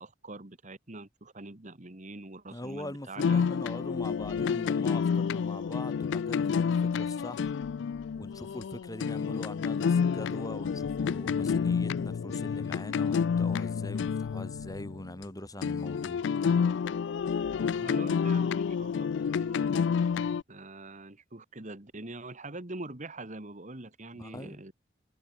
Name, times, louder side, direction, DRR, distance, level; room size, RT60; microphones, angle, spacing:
voice 1, 0.0-3.4 17.6-19.7 20.5-24.9, right 2 dB, 40° right, 2.1 m, -44 dB
voice 2, 2.5-7.5 8.2-16.2 24.1-24.6, left 1 dB, 20° left, 3.0 m, -42 dB
sound 1, 3.2-15.2 15.6-20.4, left 6 dB, 65° left, 0.3 m, -29 dB
head